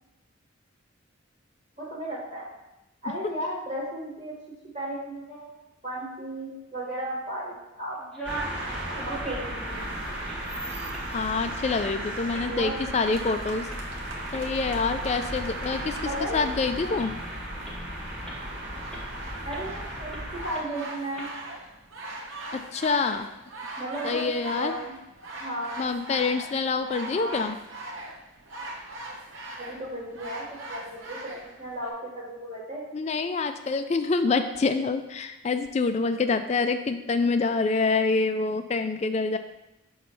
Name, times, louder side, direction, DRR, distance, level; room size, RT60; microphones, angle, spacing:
voice 1, 1.8-2.5 3.0-4.3 4.7-5.6 5.8-8.0 9.0-9.9 12.3-12.8 15.7-16.5 16.8-17.0 19.4-21.3 23.8-25.0 25.4-25.9 27.1-27.5 29.6-32.8, right 1 dB, 35° right, -6 dB, 1.5 m, -35 dB
sound 1, 8.0-8.6 8.9-9.7 10.1-10.5 10.9-11.1 11.7-11.9 12.3-12.4 13.0-13.2 13.7-13.8 14.3-15.4 15.7-15.8 16.3-16.4 17.0-17.1 17.6-17.8 18.3-18.5 18.9-19.0 19.5-19.7 20.1-20.2 20.5-20.6 21.1-21.3, right 2 dB, ahead, 0.9 m, -39 dB
sound 2, 8.2-20.5, right 1 dB, 60° right, 1.7 m, -35 dB
voice 2, 11.1-13.7 14.3-16.0 16.3-17.1 22.5-23.3 24.0-24.8 25.8-27.6 32.9-39.4, left 4 dB, 35° left, 9 dB, 0.3 m, -26 dB
sound 3, 13.0-31.9, right 2 dB, 80° right, 0.9 m, -42 dB
6.1 x 3.1 x 5.5 m, 0.93 s
head